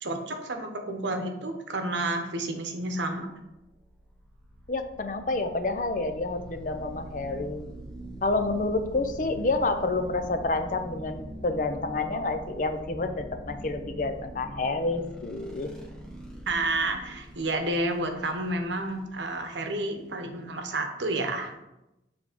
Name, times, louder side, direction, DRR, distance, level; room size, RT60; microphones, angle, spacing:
voice 1, 0.0-3.3 16.5-21.5, right 2 dB, 85° right, 5 dB, 0.9 m, -30 dB
sound 1, 3.3-20.5, right 1 dB, 5° left, 0.8 m, -43 dB
voice 2, 4.7-7.6 8.2-15.7, left 3 dB, 45° left, 8 dB, 0.5 m, -29 dB
7.0 x 3.5 x 5.0 m, 0.94 s
head